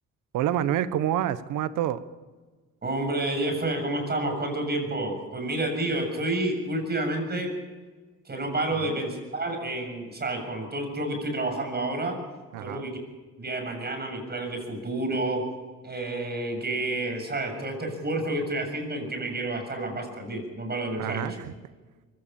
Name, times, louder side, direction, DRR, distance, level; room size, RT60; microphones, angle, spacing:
voice 1, 0.3-2.0 8.7-9.0 12.5-12.9 21.0-21.5, right 11 dB, 90° right, 14 dB, 1.2 m, -28 dB
voice 2, 2.8-7.5 8.2-12.2 12.6-13.0 13.4-15.5 15.8-21.4, right 2 dB, 35° right, 4 dB, 7.3 m, -29 dB
23.5 x 17.0 x 7.1 m, 1.3 s
cardioid pair, 90°, 30 cm